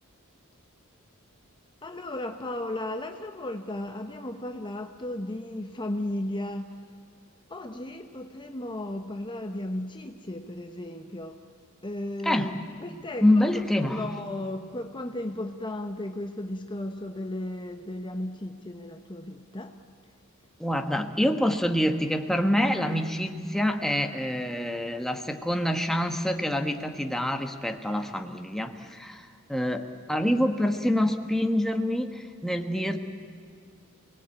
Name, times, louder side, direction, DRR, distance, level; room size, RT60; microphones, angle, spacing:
voice 1, 1.8-6.7 7.5-11.4 11.8-13.5 13.8-19.8, left 1 dB, 25° left, 5 dB, 1.0 m, -35 dB
voice 2, 12.2-12.6 13.2-14.2 20.6-33.0, left 1 dB, ahead, 5 dB, 1.3 m, -26 dB
29.0 x 19.5 x 8.9 m, 2.2 s
head